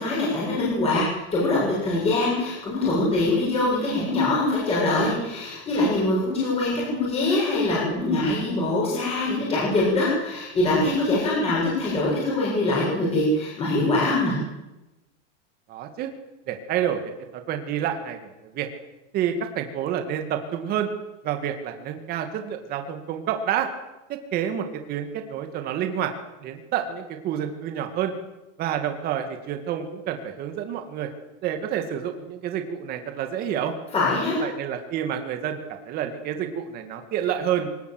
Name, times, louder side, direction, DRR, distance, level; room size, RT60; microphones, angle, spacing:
voice 1, 0.0-14.4 33.9-34.5, left 2 dB, 15° left, -6 dB, 7.4 m, -23 dB
voice 2, 15.7-16.1 16.5-17.0 17.3-18.7 19.1-20.9 21.2-23.7 24.1-26.1 26.4-28.1 28.6-31.1 31.4-33.7 34.4-37.7, right 9 dB, 25° right, 5 dB, 2.2 m, -28 dB
23.0 x 19.5 x 8.0 m, 1.0 s
supercardioid pair, 175°, 36 cm